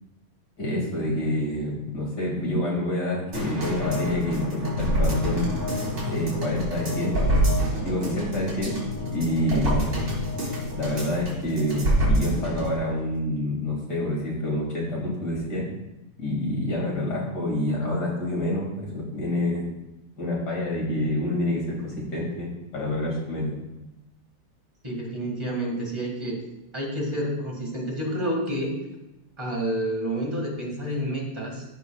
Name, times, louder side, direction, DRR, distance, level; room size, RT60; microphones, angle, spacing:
voice 1, 0.6-5.5 6.1-7.2 7.8-8.8 9.1-9.8 10.7-15.7 16.2-19.7 20.2-23.5, left 1 dB, 65° left, -3 dB, 2.8 m, -27 dB
sound 1, 3.3-12.8 13.1-13.2, equal, 55° right, 3.1 m, -26 dB
voice 2, 24.8-26.4 26.7-28.7 29.4-31.6, right 1 dB, 15° right, -2 dB, 1.7 m, -29 dB
14.0 x 5.3 x 2.3 m, 0.96 s
omnidirectional pair, 1.9 m